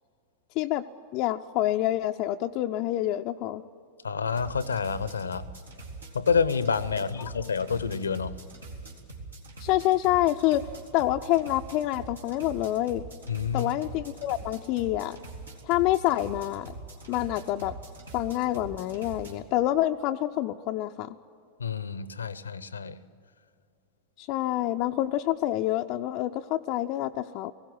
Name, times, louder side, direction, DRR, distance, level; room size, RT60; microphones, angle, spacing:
voice 1, 1.1-3.6 7.2-7.3 9.6-10.7 10.9-13.0 13.5-15.2 15.6-16.7 17.1-17.8 18.1-21.1 24.2-27.5, left 14 dB, 40° left, 6 dB, 0.5 m, -27 dB
voice 2, 4.0-5.5 6.1-8.3 13.3-13.7 21.6-23.0, left 6 dB, 75° left, 17 dB, 0.7 m, -28 dB
sound 1, 4.3-19.3, right 3 dB, 75° right, 2.4 m, -43 dB
19.5 x 16.5 x 8.9 m, 2.5 s
figure-of-eight pair, 90°, 0 cm